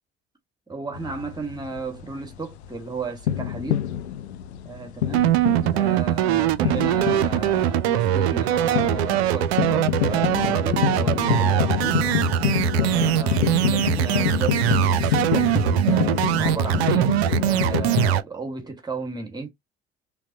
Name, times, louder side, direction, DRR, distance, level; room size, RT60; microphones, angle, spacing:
voice 1, 0.7-3.8 4.6-5.3 5.7-12.0 12.8-15.5 15.8-17.1 17.4-19.5, right 3 dB, 10° right, 1.7 m, -34 dB
sound 1, 0.9-18.1, left 10 dB, 80° left, 0.5 m, -27 dB
sound 2, 5.1-18.2, right 12 dB, 70° right, 0.5 m, -22 dB
5.7 x 2.1 x 2.8 m
figure-of-eight pair, 55°, 32 cm